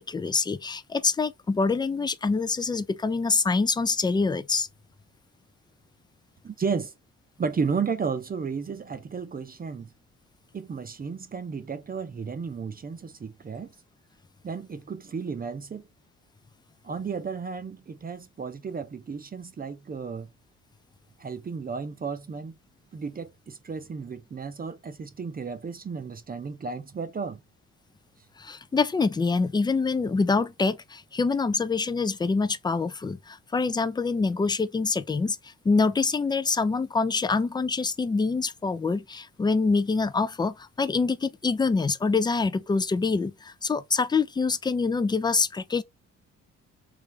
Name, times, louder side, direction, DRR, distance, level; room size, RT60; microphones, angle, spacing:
voice 1, 0.0-4.7 28.4-45.8, left 4 dB, 15° left, 0.4 m, -25 dB
voice 2, 6.4-6.9 7.4-9.9 10.5-13.7 14.4-15.8 16.8-20.3 21.2-22.6 22.9-27.4, right 5 dB, 30° right, 0.6 m, -33 dB
3.4 x 3.2 x 3.2 m
cardioid pair, 90°, 30 cm